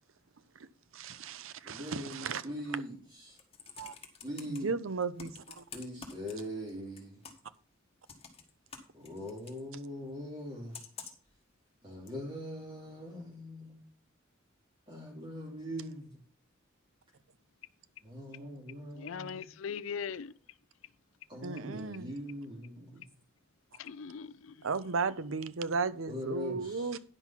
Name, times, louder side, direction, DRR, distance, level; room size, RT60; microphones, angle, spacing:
voice 1, 0.9-2.4 3.8-3.9 4.6-5.3 5.6-5.7 21.4-22.1 24.6-27.0, right 4 dB, 80° right, 0.7 m, -34 dB
voice 2, 1.6-3.4 4.2-4.8 5.7-7.2 8.9-10.8 11.8-13.8 14.9-16.2 18.0-19.5 21.3-23.0 26.1-27.0, equal, 25° right, 3.0 m, -42 dB
Computer keyboard, 3.2-4.6 5.2-6.7 7.0-7.6 8.1-9.6 10.7-11.3 12.1-12.2, left 5 dB, 30° left, 1.6 m, -48 dB
voice 3, 19.0-20.3 23.8-24.5, left 6 dB, 75° left, 0.4 m, -40 dB
10.0 x 6.0 x 5.7 m
head